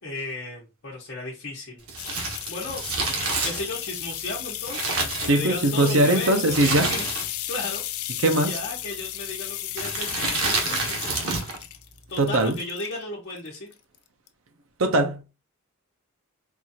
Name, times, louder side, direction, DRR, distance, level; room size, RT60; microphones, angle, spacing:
voice 1, 0.0-1.8 2.2-2.8 3.4-7.1 7.5-7.8 8.4-11.0 12.1-13.7, left 2 dB, 50° left, 1.0 m, -35 dB
Crumpling crinkling, 1.8-5.8 6.5-7.5 7.8-7.9 8.7-9.0 9.7-11.6 11.9-12.0, right 3 dB, 90° right, 1.3 m, -28 dB
sound 1, 2.0-12.9 13.4-14.0 14.3-14.4, left 13 dB, 85° left, 0.5 m, -34 dB
voice 2, 5.3-6.9 8.2-8.5 12.2-12.6 14.8-15.2, right 1 dB, 65° right, 0.7 m, -20 dB
4.5 x 2.4 x 2.7 m
head